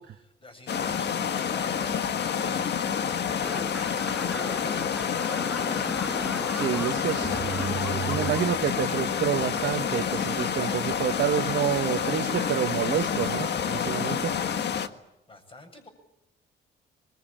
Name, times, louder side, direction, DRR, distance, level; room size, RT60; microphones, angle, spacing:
voice 1, 0.0-3.6 4.1-5.5 15.3-15.9, left 2 dB, 25° left, 7 dB, 7.9 m, -48 dB
sound 1, 0.7-14.9, left 7 dB, 60° left, 1.7 m, -28 dB
sound 2, 3.4-8.4, equal, ahead, 0.9 m, -38 dB
voice 2, 6.5-7.4 8.1-14.3, right 9 dB, 60° right, 4 dB, 1.3 m, -28 dB
Mechanisms, 7.1-13.8, right 8 dB, 30° right, 1.0 m, -40 dB
23.5 x 21.5 x 8.9 m, 0.90 s
cardioid pair, 90°, 20 cm